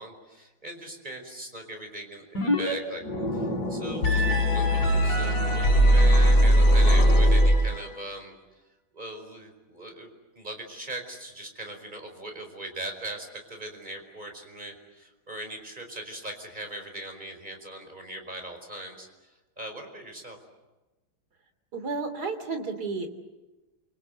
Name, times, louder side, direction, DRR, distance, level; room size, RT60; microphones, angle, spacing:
voice 1, 0.0-3.0 3.3-4.2 4.5-8.3 8.9-10.1 10.3-19.1 19.6-20.4, right 1 dB, 20° right, 4 dB, 5.1 m, -40 dB
sound 1, 2.3-2.7 3.0-8.0, equal, 50° left, 4.9 m, -20 dB
voice 2, 21.7-23.1, right 4 dB, 50° right, 8 dB, 3.4 m, -32 dB
29.5 x 24.5 x 7.9 m, 1.1 s
omnidirectional pair, 2.2 m